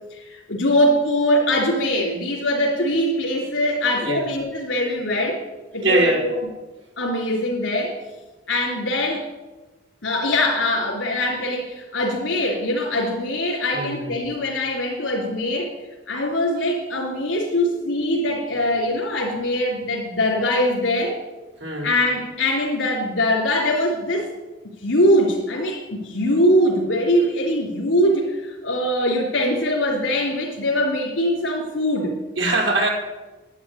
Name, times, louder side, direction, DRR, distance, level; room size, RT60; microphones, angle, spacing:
voice 1, 0.1-5.4 5.7-6.4 7.0-8.0 8.5-9.3 10.0-15.7 16.1-21.2 21.8-24.3 24.8-32.2, left 1 dB, 80° left, -2 dB, 3.4 m, -22 dB
voice 2, 5.8-6.2 13.7-14.1 21.6-21.9 32.4-32.9, right 1 dB, 85° right, -1 dB, 4.4 m, -21 dB
11.5 x 9.1 x 9.9 m, 1.2 s
head